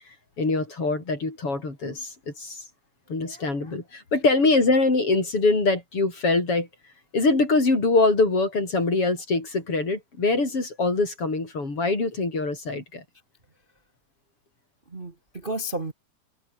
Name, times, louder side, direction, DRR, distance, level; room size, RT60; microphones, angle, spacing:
voice 1, 0.4-2.7 3.1-6.7 7.1-13.0, left 3 dB, 35° left, 7.2 m, -23 dB
voice 2, 14.9-15.9, right 1 dB, 70° right, 0.5 m, -33 dB
omnidirectional pair, 4.3 m